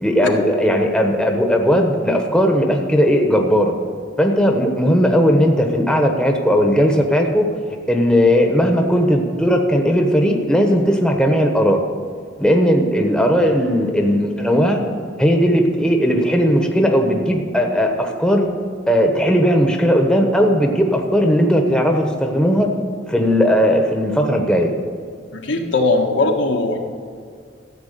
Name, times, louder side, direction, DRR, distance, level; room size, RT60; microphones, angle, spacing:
voice 1, 0.0-3.7 4.2-7.5 7.9-11.8 12.4-14.8 15.2-18.5 18.9-22.7 23.1-24.7, equal, 5° left, 2 dB, 1.1 m, -17 dB
voice 2, 25.3-26.8, left 2 dB, 80° left, 1 dB, 1.6 m, -19 dB
14.0 x 8.4 x 6.8 m, 2.2 s
head